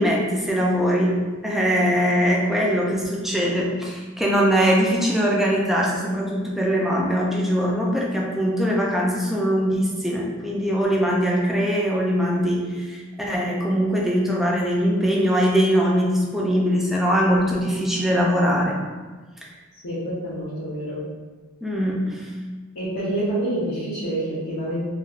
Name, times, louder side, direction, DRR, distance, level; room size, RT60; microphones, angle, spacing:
voice 1, 0.0-18.7 21.6-22.3, equal, ahead, -3 dB, 0.4 m, -22 dB
voice 2, 19.8-21.1 22.7-24.9, right 1 dB, 90° left, -10 dB, 0.9 m, -27 dB
3.1 x 2.6 x 2.4 m, 1.4 s
head